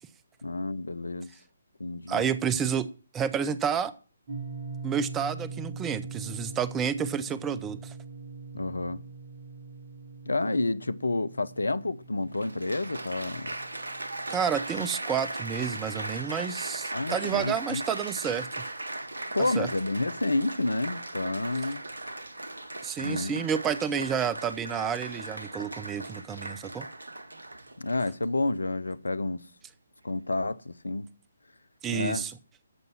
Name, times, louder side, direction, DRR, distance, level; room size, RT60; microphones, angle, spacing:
voice 1, 0.4-1.3 1.8-2.3 8.5-9.0 10.3-13.5 16.9-17.8 19.3-21.8 23.0-23.4 27.8-29.5 30.0-31.1 31.9-32.3, left 2 dB, 75° left, 0.7 m, -30 dB
voice 2, 2.1-2.9 3.1-3.9 4.8-7.9 14.3-18.6 19.6-19.7 22.8-26.9 31.8-32.4, right 7 dB, 15° right, 0.7 m, -30 dB
sound 1, 4.3-14.5, right 4 dB, 30° right, 3.0 m, -42 dB
Applause, 11.6-11.7 12.3-28.3 29.0-29.3, right 2 dB, 75° right, 1.1 m, -38 dB
13.5 x 5.4 x 7.4 m
figure-of-eight pair, 140°, 0 cm